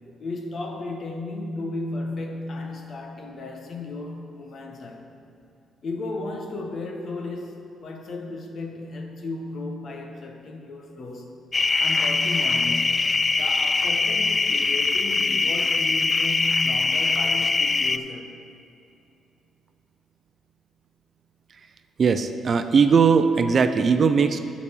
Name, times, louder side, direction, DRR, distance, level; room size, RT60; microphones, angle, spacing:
voice 1, 0.2-5.1 5.8-11.3 11.8-13.0 13.4-18.3, left 2 dB, 55° left, 3 dB, 1.3 m, -34 dB
sound 1, 11.5-18.0, left 3 dB, 30° left, 0.3 m, -22 dB
voice 2, 22.0-24.4, right 5 dB, 45° right, 9 dB, 0.6 m, -19 dB
12.0 x 4.2 x 7.2 m, 2.6 s
cardioid pair, 90°, 0 cm